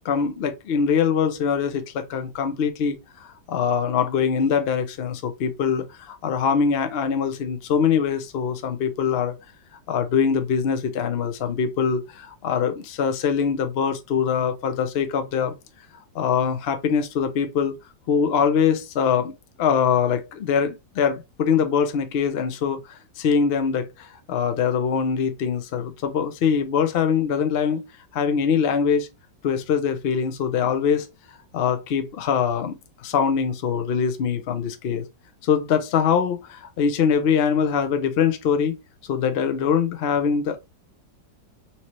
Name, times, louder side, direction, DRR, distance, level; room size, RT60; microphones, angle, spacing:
voice 1, 0.0-3.0 3.5-9.4 9.9-15.5 16.1-17.8 18.1-19.3 19.6-27.8 28.1-29.1 29.4-31.1 31.5-32.7 33.0-35.1 35.4-38.8 39.1-40.6, left 7 dB, 80° left, 0.5 m, -23 dB
4.5 x 2.9 x 3.0 m
omnidirectional pair, 2.0 m